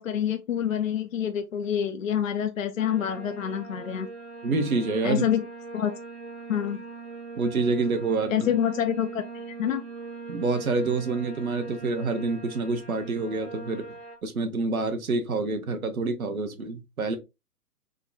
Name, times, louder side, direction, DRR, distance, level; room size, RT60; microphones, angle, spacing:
voice 1, 0.0-4.1 5.0-5.5 5.7-5.9 6.5-6.8 8.3-9.8, left 9 dB, 60° left, 0.5 m, -27 dB
sound 1, 2.8-14.2, right 4 dB, 30° right, 1.1 m, -41 dB
voice 2, 4.4-5.3 7.4-8.5 10.3-14.0 14.2-17.2, right 3 dB, 60° right, 0.9 m, -27 dB
3.7 x 2.2 x 3.7 m
figure-of-eight pair, 130°, 47 cm